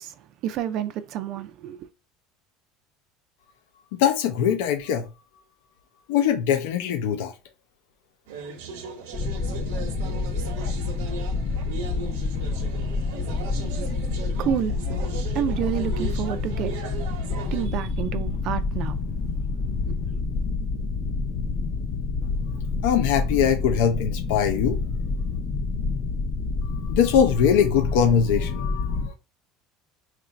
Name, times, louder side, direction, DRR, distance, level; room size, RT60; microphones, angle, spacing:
voice 1, 0.0-1.9 13.7-13.9 14.4-14.8 15.3-16.8 17.5-19.0, right 10 dB, 45° right, 0.3 m, -29 dB
voice 2, 3.9-5.0 6.1-7.3 22.8-24.8 26.6-29.1, left 8 dB, 80° left, 0.6 m, -22 dB
sound 1, 8.3-17.7, right 5 dB, 85° right, 0.8 m, -38 dB
sound 2, 9.1-29.1, left 4 dB, 35° left, 0.4 m, -28 dB
2.9 x 2.5 x 4.2 m
cardioid pair, 165°, 0 cm